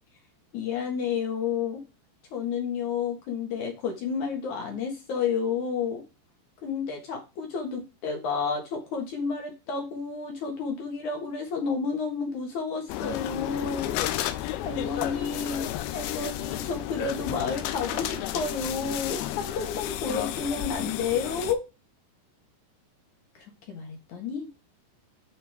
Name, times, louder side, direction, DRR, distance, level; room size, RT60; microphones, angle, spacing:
voice 1, 0.5-1.8 2.3-6.0 6.6-13.9 14.3-21.6 23.7-24.5, left 5 dB, 55° left, 3 dB, 2.6 m, -31 dB
sound 1, 12.9-21.5, left 13 dB, 80° left, 2.5 m, -32 dB
11.5 x 5.4 x 3.6 m, 0.28 s
omnidirectional pair, 4.9 m